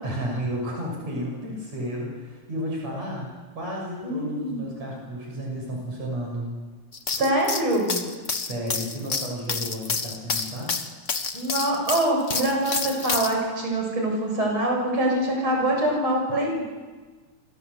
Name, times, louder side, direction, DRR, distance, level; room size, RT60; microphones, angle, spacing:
voice 1, 0.0-6.5 8.3-10.7, equal, 60° right, -1 dB, 7.7 m, -32 dB
voice 2, 4.0-4.6 7.1-8.0 11.3-16.6, right 1 dB, 40° right, 0 dB, 8.2 m, -24 dB
sound 1, 6.9-13.3, left 4 dB, 35° left, 1.3 m, -29 dB
29.0 x 25.0 x 8.2 m, 1.4 s
omnidirectional pair, 3.4 m